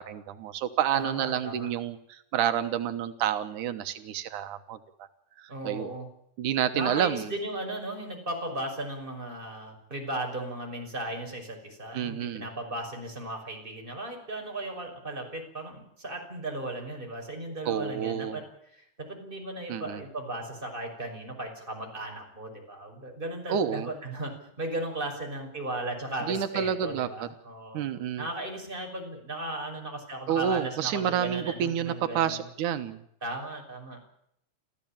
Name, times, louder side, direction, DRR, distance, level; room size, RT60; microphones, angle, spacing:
voice 1, 0.0-4.8 5.4-5.9 6.4-7.3 11.9-12.4 17.7-18.4 19.7-20.0 23.5-23.9 26.3-27.3 27.7-28.2 30.3-33.0, right 9 dB, 90° right, 9 dB, 2.7 m, -29 dB
voice 2, 0.9-1.7 5.5-6.1 6.7-18.4 18.7-27.8 28.2-32.5 33.2-34.0, right 1 dB, 15° right, 2 dB, 6.1 m, -36 dB
27.0 x 15.0 x 8.9 m, 0.74 s
omnidirectional pair, 3.4 m